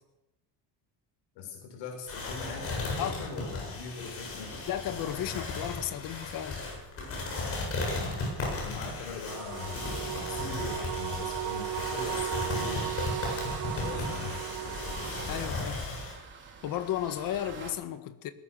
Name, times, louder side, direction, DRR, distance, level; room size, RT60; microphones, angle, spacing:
voice 1, 1.4-4.6 8.5-9.8 10.3-12.9 13.7-14.4, left 5 dB, 75° left, 7.5 m, -41 dB
sound 1, 2.1-16.1, left 3 dB, 30° left, 8.0 m, -36 dB
voice 2, 4.7-6.6 13.9-14.2 15.3-15.9 16.6-18.3, left 11 dB, 50° left, 1.8 m, -34 dB
sound 2, 9.3-15.5, right 13 dB, 55° right, 2.0 m, -36 dB
sound 3, 12.5-17.7, right 5 dB, 25° right, 3.8 m, -45 dB
21.0 x 18.5 x 6.8 m
cardioid pair, 170°, 42 cm